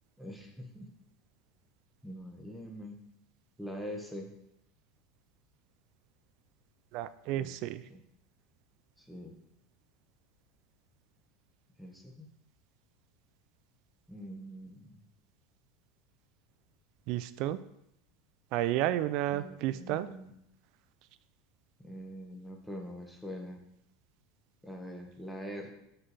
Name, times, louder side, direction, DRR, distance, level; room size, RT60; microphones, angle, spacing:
voice 1, 0.2-0.9 2.0-3.0 3.6-4.3 7.3-7.6 7.9-8.0 9.0-9.3 11.8-12.3 14.1-15.0 19.3-20.3 21.8-23.6 24.6-25.7, equal, 5° left, 1 dB, 1.1 m, -44 dB
voice 2, 6.9-7.8 17.1-17.6 18.5-20.1, right 13 dB, 60° right, 15 dB, 0.4 m, -31 dB
5.6 x 5.5 x 4.1 m, 0.78 s
supercardioid pair, 120°, 0 cm